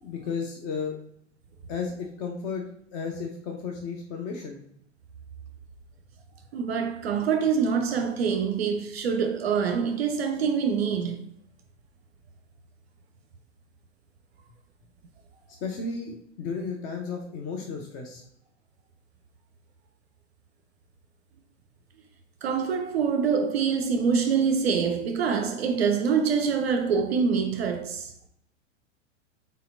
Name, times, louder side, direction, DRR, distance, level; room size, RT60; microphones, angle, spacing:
voice 1, 0.0-0.9 1.7-2.6 2.9-4.6 15.6-18.2, left 5 dB, 20° left, 0.4 m, -33 dB
voice 2, 6.5-11.2 22.4-28.1, right 6 dB, 60° right, 0.5 m, -25 dB
4.2 x 3.7 x 2.4 m
figure-of-eight pair, 95°, 36 cm